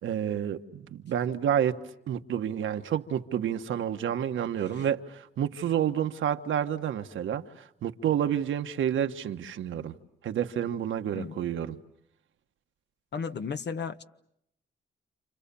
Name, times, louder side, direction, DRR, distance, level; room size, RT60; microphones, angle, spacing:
voice 1, 0.0-1.8 2.1-7.4 7.8-9.9 10.2-11.8, right 9 dB, 85° right, 1.4 m, -29 dB
voice 2, 13.1-14.0, left 5 dB, 60° left, 1.3 m, -34 dB
29.0 x 28.5 x 7.0 m
cardioid pair, 65°, 20 cm